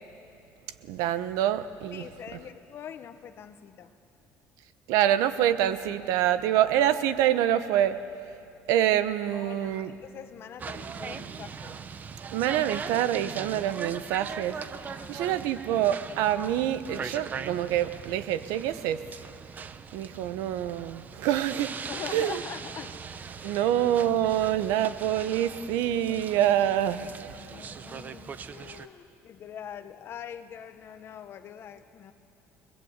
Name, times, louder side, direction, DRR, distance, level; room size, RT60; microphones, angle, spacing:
voice 1, 0.9-2.0 4.9-8.0 8.7-9.9 12.3-14.6 15.1-19.0 19.9-21.7 22.1-22.4 23.4-27.1, right 11 dB, 90° right, 12 dB, 1.0 m, -26 dB
voice 2, 1.9-3.9 9.3-11.8 14.9-15.4 21.9-23.0 23.4-23.7 26.1-26.2 27.3-32.1, left 9 dB, 45° left, 9 dB, 1.3 m, -43 dB
sound 1, 10.6-28.9, right 6 dB, 30° right, 0.8 m, -40 dB
29.5 x 21.0 x 8.2 m, 2.6 s
cardioid pair, 145°, 6 cm